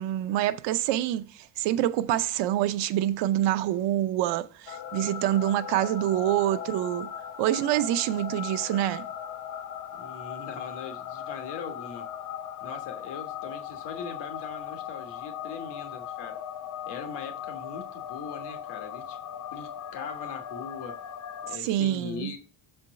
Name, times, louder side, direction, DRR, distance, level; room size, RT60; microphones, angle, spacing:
voice 1, 0.0-7.1 7.4-9.0 21.6-22.3, right 13 dB, 90° right, 0.7 m, -26 dB
sound 1, 4.7-21.6, left 9 dB, 45° left, 0.6 m, -38 dB
voice 2, 10.0-12.1 12.6-16.4 16.9-19.2 19.5-21.0 21.4-22.4, left 5 dB, 75° left, 1.5 m, -40 dB
6.9 x 4.3 x 6.6 m
cardioid pair, 160°, 42 cm